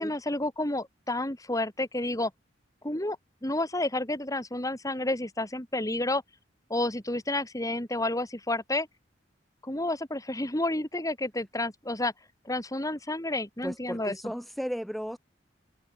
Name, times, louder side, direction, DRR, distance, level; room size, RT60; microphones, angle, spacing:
voice 1, 0.0-2.3 2.8-3.2 3.4-6.2 6.7-8.9 9.6-12.1 12.4-14.3, left 1 dB, 20° left, 3.0 m, -30 dB
voice 2, 13.6-15.2, equal, ahead, 1.9 m, -35 dB
head